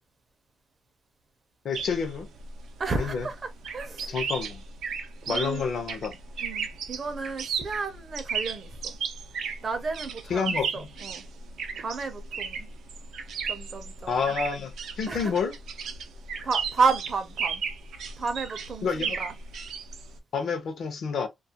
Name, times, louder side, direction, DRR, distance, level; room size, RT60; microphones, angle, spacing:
voice 1, 1.6-2.3 2.9-3.3 4.1-4.6 5.3-6.2 10.3-10.9 14.1-15.5 18.8-19.2 20.3-21.3, left 5 dB, 60° left, 0.5 m, -29 dB
sound 1, 1.7-20.2, right 6 dB, 90° right, 0.4 m, -35 dB
voice 2, 2.8-4.2 5.2-5.6 6.4-9.0 9.6-11.2 11.8-12.7 13.5-14.2 15.1-15.3 16.4-17.6 18.2-19.3, right 4 dB, 35° right, 0.5 m, -31 dB
2.3 x 2.2 x 2.7 m
wide cardioid pair, 170°, 0 cm